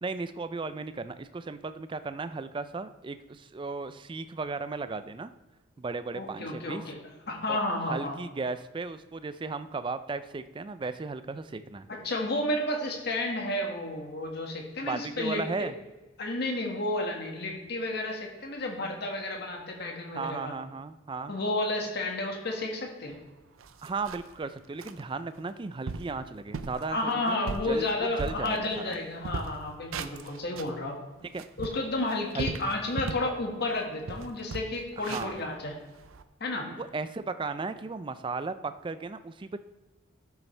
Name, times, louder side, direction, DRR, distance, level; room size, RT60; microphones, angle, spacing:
voice 1, 0.0-5.3 5.8-6.8 7.5-7.6 7.9-11.9 14.8-15.7 20.2-21.3 23.8-27.0 27.3-29.0 31.3-31.4 32.3-32.5 35.0-35.4 36.8-39.6, right 4 dB, 25° right, 12 dB, 0.4 m, -35 dB
voice 2, 6.1-7.0 7.3-8.1 11.9-15.7 16.2-20.5 21.3-23.2 26.9-31.0 31.6-35.8 36.4-36.7, left 2 dB, 55° left, 1 dB, 1.7 m, -31 dB
sound 1, 23.1-23.2 23.6-24.4 24.8-25.0 25.5-25.6 25.9-26.2 26.5-26.8 27.3-29.0 29.2-30.8 31.2-33.3 33.7-33.8 34.1-36.2, right 4 dB, 90° right, 0.5 m, -37 dB
12.0 x 7.1 x 3.3 m, 1.2 s
head